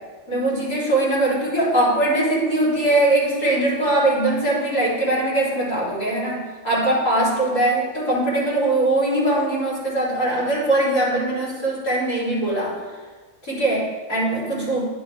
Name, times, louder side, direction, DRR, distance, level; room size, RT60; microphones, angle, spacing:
voice 1, 0.3-12.8 13.4-14.8, right 1 dB, 55° left, -9 dB, 4.2 m, -21 dB
10.0 x 9.6 x 3.4 m, 1.4 s
omnidirectional pair, 1.8 m